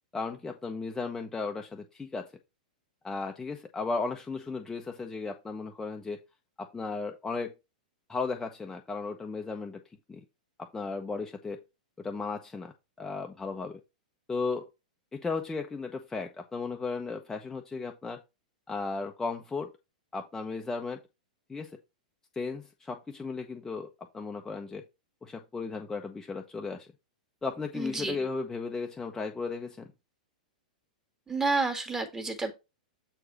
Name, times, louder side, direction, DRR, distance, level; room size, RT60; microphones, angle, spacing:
voice 1, 0.1-2.3 3.0-6.2 6.6-7.5 8.1-9.8 10.1-10.2 10.6-11.6 12.0-13.8 14.3-14.7 15.1-18.2 18.7-19.7 20.1-21.0 21.5-21.7 22.3-24.8 25.2-26.9 27.4-29.9, left 4 dB, 10° left, 3 dB, 1.0 m, -35 dB
voice 2, 27.7-28.2 31.3-32.5, right 3 dB, 10° right, 5 dB, 2.1 m, -30 dB
7.8 x 4.8 x 4.2 m, 0.25 s
figure-of-eight pair, 100°, 4 cm